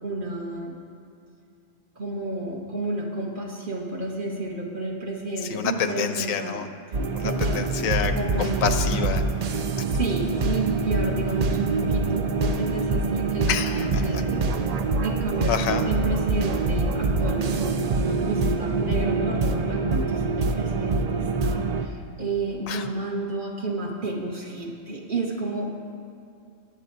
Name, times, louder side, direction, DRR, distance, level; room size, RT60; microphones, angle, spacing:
voice 1, 0.0-0.7 2.0-6.6 7.2-7.6 8.1-9.1 9.8-14.5 15.0-25.7, right 2 dB, 40° right, -1 dB, 1.3 m, -31 dB
voice 2, 5.4-6.7 7.1-8.1 8.4-9.2 13.5-14.2 15.5-15.8 22.7-22.9, left 7 dB, 85° left, 9 dB, 1.1 m, -27 dB
sound 1, 6.9-21.9, right 3 dB, 85° right, 0.3 m, -25 dB
20.0 x 8.1 x 2.6 m, 2.4 s
omnidirectional pair, 1.4 m